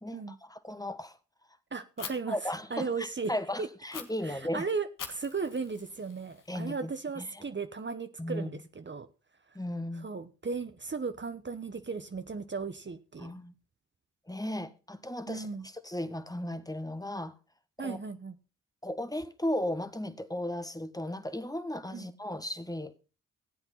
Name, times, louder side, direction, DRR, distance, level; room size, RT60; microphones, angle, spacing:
voice 1, 0.0-1.2 2.3-4.7 6.5-7.4 8.2-8.6 9.5-10.1 13.2-13.5 14.3-17.3 17.8-18.0 18.8-23.0, left 1 dB, 10° left, 1.5 m, -36 dB
voice 2, 1.7-2.4 2.7-3.3 3.6-3.7 4.2-9.1 10.0-13.3 15.3-15.7 17.8-18.3 21.9-22.1, right 4 dB, 35° right, 1.1 m, -36 dB
Fire, 2.0-2.1 3.9-4.0 5.0-6.9, left 7 dB, 65° left, 1.8 m, -44 dB
14.5 x 8.0 x 5.7 m
supercardioid pair, 45°, 34 cm